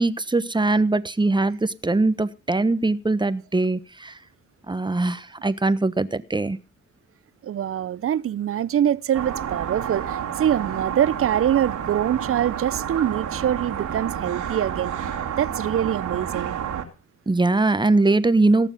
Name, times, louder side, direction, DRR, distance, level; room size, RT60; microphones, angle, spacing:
voice 1, 0.0-4.1 4.7-6.6 17.3-18.7, right 2 dB, 15° right, 1.2 m, -21 dB
voice 2, 7.4-15.1 15.4-16.5, right 10 dB, 45° right, 0.6 m, -24 dB
sound 1, 9.1-16.8, right 9 dB, 70° right, 2.7 m, -30 dB
18.0 x 7.1 x 5.7 m
hypercardioid pair, 50°, 32 cm